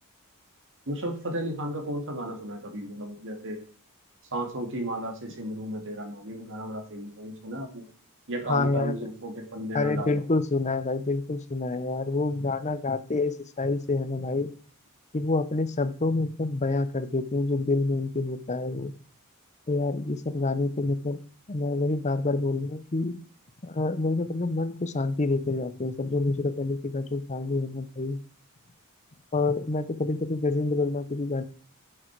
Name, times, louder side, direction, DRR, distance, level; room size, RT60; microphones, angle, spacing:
voice 1, 0.9-3.6 4.3-7.8 8.3-10.2, right 1 dB, 60° right, 5 dB, 2.0 m, -34 dB
voice 2, 8.5-9.0 9.7-14.5 15.1-18.9 19.7-21.2 21.5-23.1 23.6-28.2 29.3-31.4, left 3 dB, 30° left, 12 dB, 0.7 m, -27 dB
10.5 x 6.6 x 4.6 m, 0.43 s
head